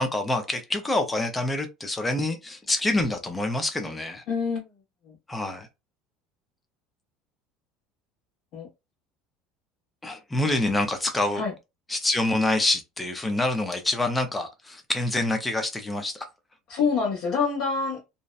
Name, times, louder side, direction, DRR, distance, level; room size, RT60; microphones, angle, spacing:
voice 1, 0.0-4.2 5.3-5.7 10.0-11.4 11.9-16.3, left 2 dB, 5° left, 0.4 m, -26 dB
voice 2, 4.3-4.7 5.1-5.2 8.5-8.7 11.3-11.5 16.7-18.0, left 5 dB, 45° left, 0.9 m, -26 dB
2.6 x 2.1 x 2.3 m
cardioid pair, 180°, 0 cm